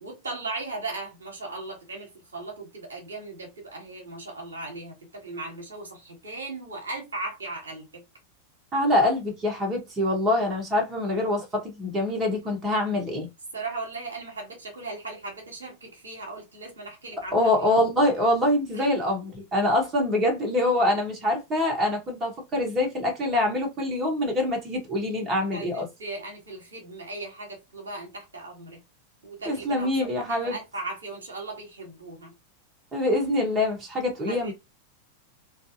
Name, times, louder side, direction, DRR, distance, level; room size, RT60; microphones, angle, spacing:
voice 1, 0.0-8.0 13.5-17.5 18.7-18.9 25.5-28.8 29.2-32.3 34.3-34.5, right 2 dB, 75° right, 1.2 m, -37 dB
voice 2, 8.7-13.3 17.3-25.9 29.5-30.6 32.9-34.5, left 1 dB, 20° right, 1.2 m, -25 dB
3.2 x 2.7 x 2.6 m
figure-of-eight pair, 90°, 0 cm